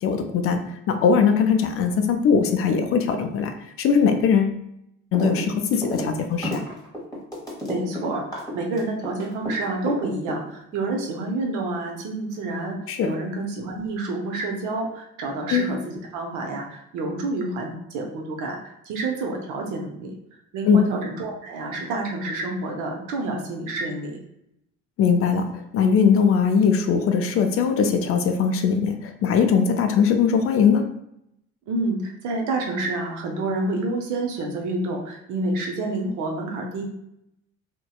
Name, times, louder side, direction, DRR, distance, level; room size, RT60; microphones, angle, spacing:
voice 1, 0.0-4.6 5.1-6.6 12.9-13.1 15.5-15.7 20.7-20.8 25.0-30.9, left 6 dB, 45° left, 6 dB, 0.4 m, -20 dB
sound 1, 5.1-5.4 5.7-9.5 9.9-10.7, equal, 10° left, 1.2 m, -30 dB
voice 2, 7.7-12.8 13.0-20.2 20.5-24.2 31.7-36.8, right 2 dB, 65° right, 2 dB, 0.7 m, -28 dB
2.6 x 2.2 x 2.3 m, 0.79 s
supercardioid pair, 70°, 32 cm